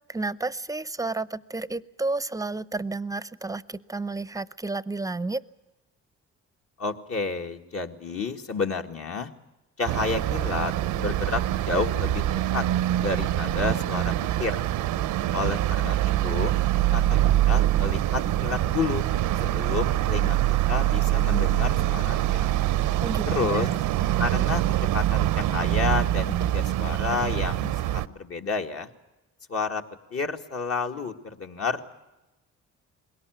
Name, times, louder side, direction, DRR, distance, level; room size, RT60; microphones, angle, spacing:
voice 1, 0.1-5.4 23.0-23.7, right 3 dB, 10° right, 18 dB, 0.7 m, -31 dB
voice 2, 6.8-9.3 9.8-12.6 13.0-14.1 14.4-14.6 15.3-16.5 16.9-19.0 19.4-22.5 23.3-23.7 24.2-28.9 29.5-29.8 30.1-31.8, left 4 dB, 50° left, 4 dB, 2.1 m, -30 dB
sound 1, 9.9-28.1, right 13 dB, 85° right, 0.8 m, -24 dB
21.5 x 18.0 x 9.3 m, 1.0 s
cardioid pair, 90°, 30 cm